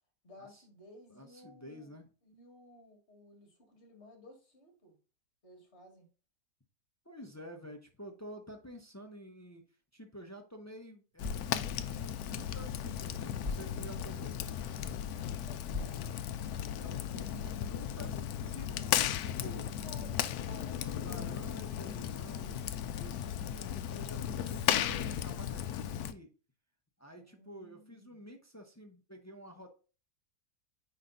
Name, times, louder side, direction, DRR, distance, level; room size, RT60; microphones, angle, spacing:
voice 1, 0.2-1.9 2.2-5.0 5.4-6.1 15.3-16.0 19.8-22.0 27.1-28.2, left 1 dB, 40° left, 3 dB, 2.4 m, -56 dB
voice 2, 1.1-2.1 7.0-9.7 9.9-14.4 16.5-19.7 20.9-26.3 27.0-29.7, equal, 25° left, 4 dB, 0.3 m, -50 dB
sound 1, 11.0-17.0, left 3 dB, 15° right, 2.1 m, -46 dB
Fire, 11.2-26.1, left 10 dB, 70° left, 1.0 m, -36 dB
9.5 x 3.3 x 3.9 m, 0.35 s
omnidirectional pair, 1.8 m